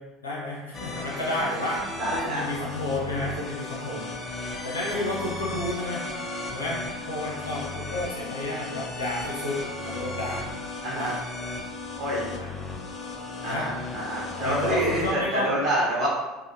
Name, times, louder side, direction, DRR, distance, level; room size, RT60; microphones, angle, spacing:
voice 1, 0.2-1.8 2.1-4.1 4.6-6.0 6.5-6.8 7.1-10.4 10.9-11.1 12.3-12.5 13.5-13.7 14.4-15.5, left 1 dB, 85° left, -6 dB, 0.7 m, -31 dB
sound 1, 0.7-15.1, left 3 dB, 35° left, 0.5 m, -35 dB
voice 2, 2.0-2.5 10.8-11.1 12.0-12.3 13.4-16.1, right 1 dB, 50° right, -5 dB, 0.9 m, -27 dB
2.6 x 2.4 x 2.8 m, 1.1 s
figure-of-eight pair, 65°, 0 cm